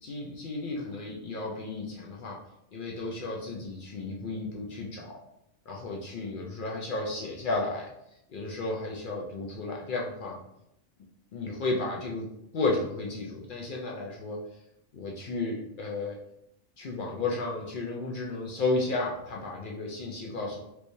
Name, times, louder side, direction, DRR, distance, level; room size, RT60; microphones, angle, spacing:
voice 1, 0.0-2.4 2.7-5.2 5.7-7.9 8.3-10.4 11.3-12.3 12.5-14.4 14.9-16.2 16.8-20.6, left 2 dB, 75° left, -2 dB, 0.4 m, -33 dB
3.3 x 3.0 x 2.6 m, 0.80 s
omnidirectional pair, 1.5 m